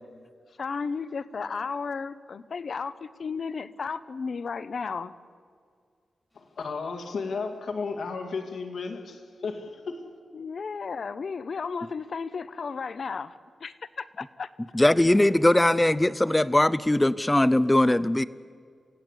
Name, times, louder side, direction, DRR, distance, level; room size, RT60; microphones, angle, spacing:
voice 1, 0.6-5.1 10.3-14.5, left 5 dB, 55° left, 14 dB, 0.8 m, -34 dB
voice 2, 6.3-10.0, left 4 dB, 80° left, 4 dB, 2.3 m, -34 dB
voice 3, 14.7-18.3, left 1 dB, 10° left, 18 dB, 0.5 m, -20 dB
28.0 x 16.5 x 8.3 m, 2.1 s
wide cardioid pair, 140°, 0 cm